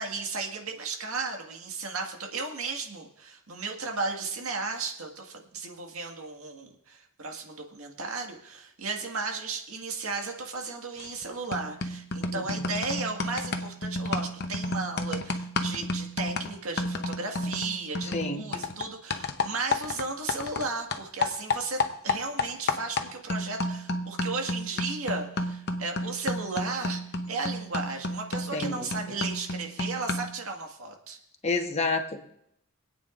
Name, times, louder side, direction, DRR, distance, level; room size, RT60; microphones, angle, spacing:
voice 1, 0.0-27.0 27.3-31.2, right 3 dB, 90° right, 2 dB, 1.9 m, -35 dB
sound 1, 11.0-11.2 11.5-20.7 20.9-30.4, left 2 dB, 50° left, 0.9 m, -32 dB
voice 2, 18.1-18.4 28.5-28.9 31.4-32.2, left 3 dB, 30° left, 4 dB, 1.3 m, -29 dB
25.5 x 9.1 x 2.6 m, 0.74 s
head